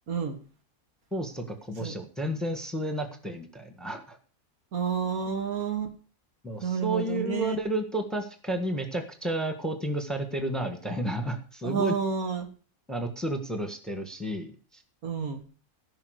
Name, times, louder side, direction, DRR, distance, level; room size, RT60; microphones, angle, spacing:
voice 1, 0.1-0.4 1.8-1.9 4.7-5.9 6.6-7.6 11.6-12.5 15.0-15.4, right 6 dB, 80° right, 2.1 m, -30 dB
voice 2, 1.1-4.2 6.4-11.9 12.9-14.8, right 1 dB, ahead, 1.5 m, -32 dB
15.0 x 5.9 x 6.5 m
omnidirectional pair, 1.5 m